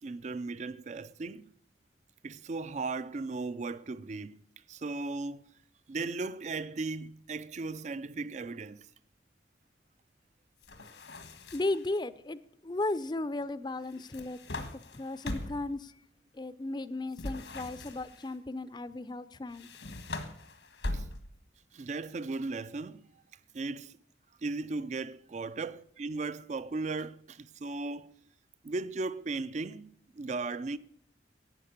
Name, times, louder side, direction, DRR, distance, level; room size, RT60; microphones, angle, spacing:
voice 1, 0.0-1.5 2.2-4.4 4.7-5.5 5.9-8.9 20.9-21.1 21.7-23.1 23.5-24.0 24.4-28.1 28.6-30.8, right 3 dB, 40° right, 0.4 m, -37 dB
sound 1, 10.6-11.9 13.9-15.7 17.1-18.3 19.5-21.5, left 2 dB, 85° left, 1.4 m, -40 dB
voice 2, 11.5-15.9 16.3-19.7 20.0-20.1, left 2 dB, 25° left, 0.5 m, -35 dB
12.0 x 8.7 x 6.6 m
head